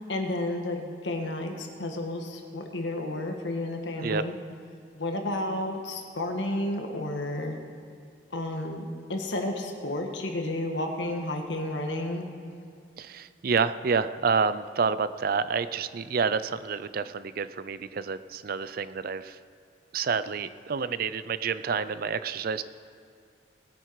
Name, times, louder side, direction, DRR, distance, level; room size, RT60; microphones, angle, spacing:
voice 1, 0.1-4.4 4.9-7.6 8.3-12.3, left 1 dB, 90° left, 3 dB, 1.6 m, -31 dB
voice 2, 13.0-19.4 19.9-22.6, right 5 dB, 55° right, 14 dB, 0.5 m, -28 dB
19.5 x 9.3 x 4.7 m, 2.3 s
head